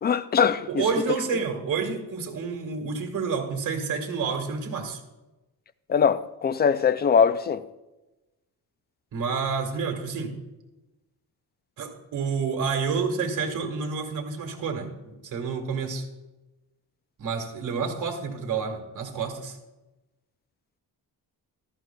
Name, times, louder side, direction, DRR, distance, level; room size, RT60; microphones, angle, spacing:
voice 1, 0.0-0.8 1.3-1.4 5.9-7.6, left 6 dB, 30° left, 0.3 m, -22 dB
voice 2, 0.7-5.0 9.1-10.4 11.8-16.0 17.2-19.6, right 5 dB, 55° right, 1.7 m, -29 dB
14.0 x 12.5 x 2.2 m
cardioid pair, 125°, 37 cm